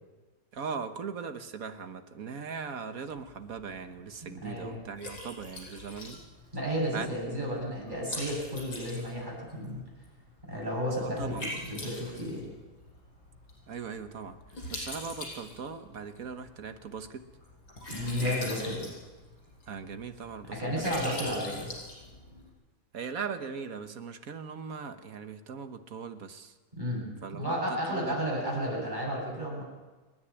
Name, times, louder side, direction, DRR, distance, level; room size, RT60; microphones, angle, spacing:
voice 1, 0.5-6.2 6.9-7.4 11.0-11.4 13.7-14.4 14.7-17.3 18.2-18.4 19.7-21.6 22.9-26.5 27.2-28.1, right 5 dB, 50° right, 8 dB, 1.4 m, -39 dB
Liquid, 3.1-22.5, left 1 dB, 75° left, 6.7 m, -44 dB
voice 2, 4.4-4.8 6.5-9.9 10.5-12.5 17.9-18.9 20.5-21.7 26.7-27.1 27.3-29.6, equal, 20° right, -3 dB, 8.3 m, -32 dB
29.5 x 10.5 x 9.9 m, 1.3 s
omnidirectional pair, 2.2 m